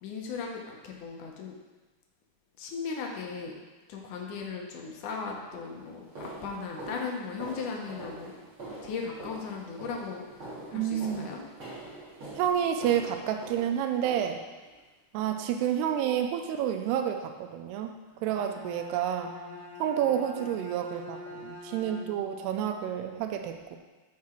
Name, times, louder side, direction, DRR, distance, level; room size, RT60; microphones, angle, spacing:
voice 1, 0.0-1.6 2.6-3.6 3.9-8.3 8.8-11.4, left 5 dB, 70° left, 0 dB, 2.0 m, -37 dB
sound 1, 4.8-5.0 5.5-14.7 15.2-15.6 15.8-16.1 16.4-16.6 17.1-17.2 17.7-17.8, right 2 dB, 35° right, 3.5 m, -45 dB
voice 2, 10.7-11.3 12.4-14.4 15.1-18.0 18.2-19.3 19.8-23.8, right 9 dB, 90° right, 5 dB, 2.7 m, -29 dB
Bowed string instrument, 18.1-22.4, left 2 dB, 50° right, 4.2 m, -45 dB
13.5 x 4.8 x 4.4 m, 1.2 s
omnidirectional pair, 4.7 m